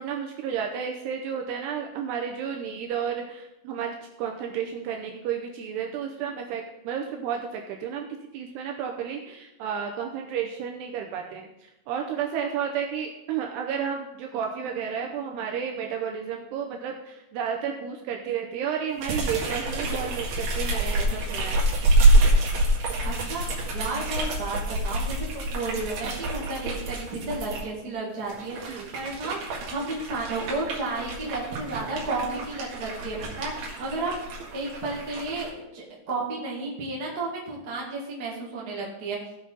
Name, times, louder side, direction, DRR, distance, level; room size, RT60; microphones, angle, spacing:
voice 1, 0.0-8.1 8.3-11.5 11.9-21.7 28.7-28.9, right 7 dB, 80° right, 2 dB, 2.6 m, -32 dB
sound 1, 19.0-27.6 28.2-35.5, right 2 dB, 60° right, 3.5 m, -26 dB
voice 2, 23.0-23.4 23.7-34.2 34.5-39.2, right 3 dB, 40° right, -4 dB, 1.4 m, -32 dB
16.5 x 6.2 x 4.0 m, 0.92 s
omnidirectional pair, 5.3 m